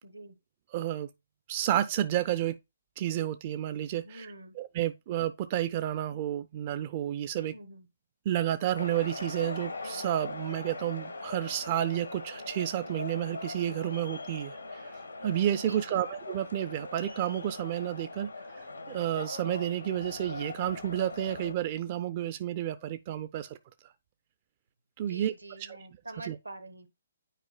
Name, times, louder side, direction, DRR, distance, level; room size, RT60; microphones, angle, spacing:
voice 1, 0.0-0.4 4.0-4.6 7.4-7.9 15.6-16.1 25.0-26.9, right 2 dB, 85° right, 1.3 m, -46 dB
voice 2, 0.7-1.1 1.5-2.6 3.0-7.6 8.3-18.3 18.9-23.6 25.0-25.8 26.2-26.4, right 12 dB, 35° right, 0.4 m, -31 dB
sound 1, 8.8-21.5, left 3 dB, 85° left, 1.8 m, -41 dB
9.0 x 4.8 x 2.3 m
figure-of-eight pair, 130°, 0 cm